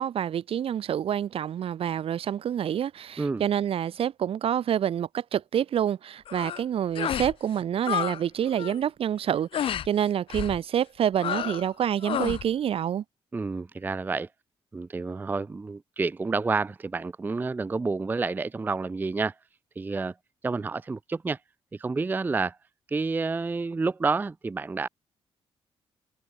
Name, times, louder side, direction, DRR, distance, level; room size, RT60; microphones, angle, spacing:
voice 1, 0.0-13.0, right 9 dB, 65° right, 1.8 m, -27 dB
sound 1, 6.3-6.6 6.9-7.3 7.6-8.2 8.5-8.8 9.5-9.9 10.3-10.6 11.2-11.7 12.0-12.4, left 10 dB, 60° left, 0.6 m, -30 dB
voice 2, 13.3-14.3 14.7-19.3 19.8-20.1 20.4-21.4 21.7-22.6 22.9-24.9, right 4 dB, 20° right, 0.4 m, -29 dB
open air
cardioid pair, 120°, 10 cm